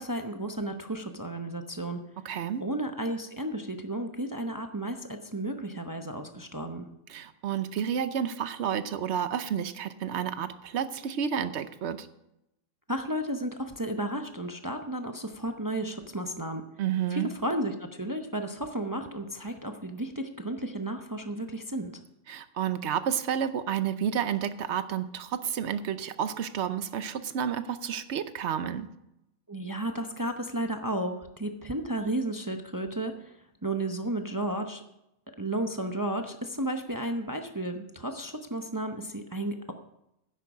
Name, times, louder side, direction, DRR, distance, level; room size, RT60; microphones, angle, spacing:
voice 1, 0.0-2.0 2.6-6.9 12.9-16.7 17.1-21.9 29.5-34.8 35.4-39.7, right 1 dB, 20° right, 5 dB, 0.6 m, -33 dB
voice 2, 2.2-2.6 7.1-12.1 16.8-17.3 22.3-28.9, right 8 dB, 60° right, 12 dB, 1.0 m, -30 dB
10.0 x 8.5 x 6.1 m, 0.85 s
omnidirectional pair, 1.4 m